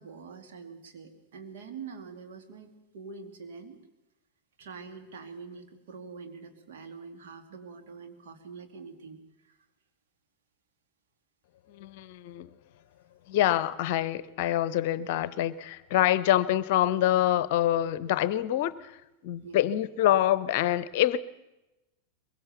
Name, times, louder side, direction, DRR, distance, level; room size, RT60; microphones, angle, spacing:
voice 1, 0.0-3.8 4.6-9.6 19.4-19.7, right 5 dB, 55° right, 5 dB, 2.7 m, -45 dB
voice 2, 11.7-12.5 13.3-19.0 19.2-21.2, left 12 dB, 50° left, 18 dB, 0.8 m, -26 dB
22.5 x 22.5 x 7.1 m, 0.98 s
figure-of-eight pair, 90°, 0 cm